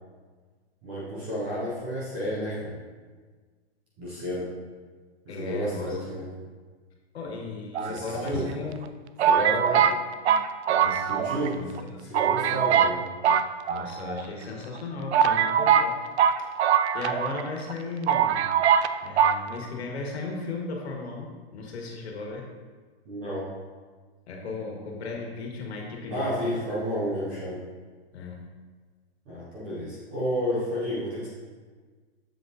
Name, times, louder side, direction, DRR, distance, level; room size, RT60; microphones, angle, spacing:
voice 1, 0.8-2.7 4.0-4.5 5.3-6.2 7.8-8.4 9.2-9.8 11.1-11.6 12.0-13.0 23.1-23.5 26.1-27.6 29.3-31.3, equal, 10° right, -8 dB, 0.5 m, -31 dB
voice 2, 5.3-6.3 7.1-8.9 9.7-9.9 10.8-12.1 13.7-16.0 16.9-18.5 19.0-22.5 24.3-26.7 28.1-28.4, left 3 dB, 75° left, 0 dB, 1.6 m, -36 dB
sound 1, 7.7-8.5 9.2-11.5 11.8-11.9 12.1-13.0 13.2-14.2 14.8-14.9 15.1-17.4 17.7-17.8 18.1-18.9 19.2-19.4, right 8 dB, 80° right, 0.5 m, -22 dB
7.3 x 6.6 x 2.7 m, 1.5 s
hypercardioid pair, 175°, 33 cm